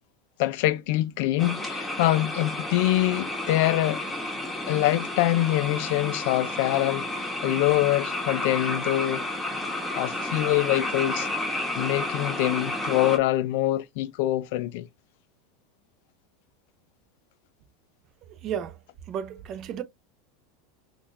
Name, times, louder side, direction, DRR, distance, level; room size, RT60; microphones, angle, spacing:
voice 1, 0.4-4.0 4.7-7.1 7.4-9.3 10.0-14.9, left 15 dB, 65° left, 0.5 m, -25 dB
sound 1, 1.4-13.2, left 1 dB, 5° left, 1.0 m, -31 dB
voice 2, 18.4-18.8 19.1-19.8, right 9 dB, 40° right, 0.7 m, -32 dB
5.8 x 2.4 x 2.5 m
supercardioid pair, 140°, 0 cm